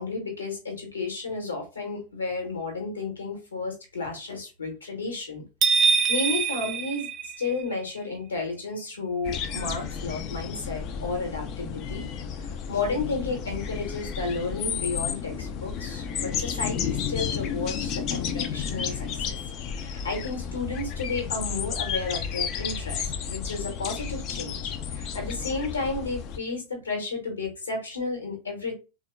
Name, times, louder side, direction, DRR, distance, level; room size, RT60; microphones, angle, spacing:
voice 1, 0.0-5.4 5.7-7.1 7.4-12.1 12.4-19.4 19.7-28.8, left 3 dB, 75° left, 3 dB, 1.1 m, -32 dB
sound 1, 5.6-7.8, right 5 dB, 30° right, 0.4 m, -24 dB
sound 2, 9.2-26.4, left 7 dB, 35° left, 0.4 m, -32 dB
3.4 x 2.2 x 2.3 m, 0.29 s
figure-of-eight pair, 90°, 0 cm